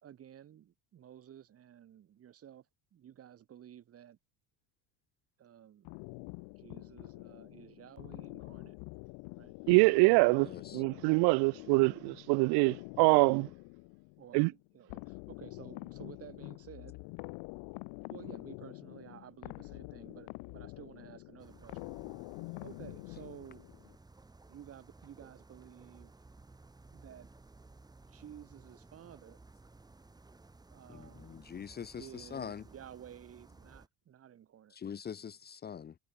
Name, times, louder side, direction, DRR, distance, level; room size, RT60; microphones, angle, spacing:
voice 1, 0.0-2.7 2.9-4.2 5.4-5.9 6.6-8.8 9.4-9.5 14.2-16.9 18.1-21.9 22.6-23.7 24.5-26.1 26.9-27.3 28.1-29.4 30.7-31.4 32.0-34.8, right 10 dB, 35° right, 3.3 m, -53 dB
sound 1, 5.8-24.0, left 30 dB, 75° left, 4.5 m, -47 dB
voice 2, 9.7-13.5 14.3-14.5, right 30 dB, 65° right, 0.6 m, -25 dB
voice 3, 10.5-10.8 30.9-32.6 34.7-35.9, left 7 dB, 20° left, 1.1 m, -43 dB
sound 2, 21.4-33.9, right 3 dB, 10° right, 3.7 m, -57 dB
cardioid pair, 165°, 43 cm